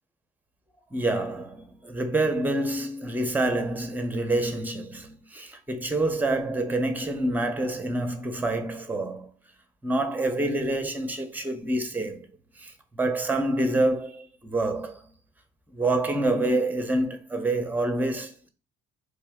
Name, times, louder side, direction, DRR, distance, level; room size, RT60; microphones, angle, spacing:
voice 1, 0.9-9.3 9.8-12.3 12.6-15.1 15.7-18.5, right 2 dB, 5° right, 0.6 m, -27 dB
3.4 x 2.7 x 3.5 m
cardioid pair, 90°, 30 cm